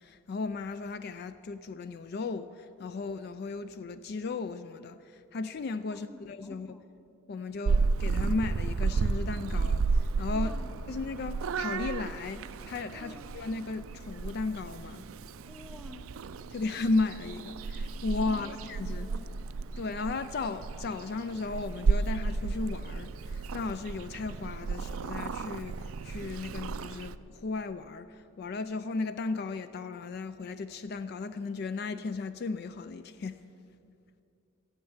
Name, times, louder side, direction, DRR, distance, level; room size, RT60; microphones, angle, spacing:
voice 1, 0.0-6.7 7.3-9.9 10.2-10.5 10.9-15.1 16.5-19.1 19.8-33.4, left 3 dB, 50° left, 0.3 m, -35 dB
voice 2, 5.9-6.9 10.3-10.7 12.9-13.4 15.5-16.1 18.3-19.3, left 1 dB, ahead, 0.7 m, -49 dB
Purr / Meow, 7.7-27.2, right 4 dB, 80° right, 0.4 m, -33 dB
14.0 x 8.7 x 7.1 m
head